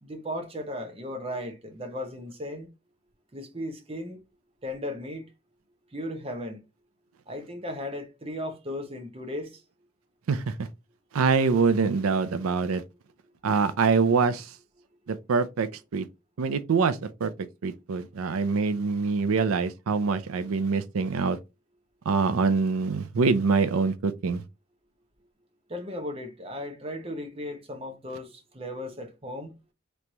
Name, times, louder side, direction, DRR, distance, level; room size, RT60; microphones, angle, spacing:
voice 1, 0.0-2.7 3.3-4.2 4.6-5.3 5.9-6.6 7.3-9.6 25.7-29.5, left 1 dB, 25° right, 0.7 m, -36 dB
voice 2, 11.1-12.8 13.4-14.5 15.1-15.7 15.9-16.1 16.4-17.3 17.6-21.4 22.1-24.4, right 4 dB, 90° right, 0.5 m, -24 dB
3.4 x 3.1 x 3.8 m
head